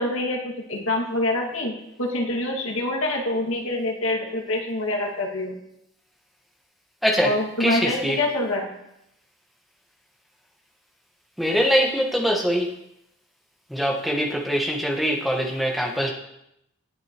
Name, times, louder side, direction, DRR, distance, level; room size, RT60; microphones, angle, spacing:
voice 1, 0.0-1.7 2.0-5.6 7.2-8.7, left 1 dB, 70° left, 0 dB, 2.1 m, -25 dB
voice 2, 7.6-8.2 11.4-12.7 13.7-16.1, equal, ahead, -1 dB, 1.4 m, -23 dB
19.5 x 6.5 x 3.0 m, 0.81 s
head